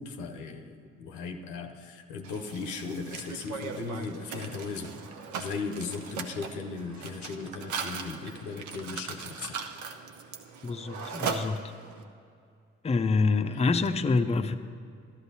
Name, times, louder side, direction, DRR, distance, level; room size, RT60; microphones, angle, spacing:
voice 1, 0.0-4.9 5.4-9.6, left 4 dB, 85° left, 5 dB, 0.7 m, -37 dB
Mechanisms, 2.2-12.0, right 5 dB, 75° right, 0.7 m, -39 dB
voice 2, 10.6-11.7 12.8-14.5, left 4 dB, 20° left, 8 dB, 0.5 m, -26 dB
13.0 x 11.5 x 2.8 m, 2.3 s
hypercardioid pair, 45°, 29 cm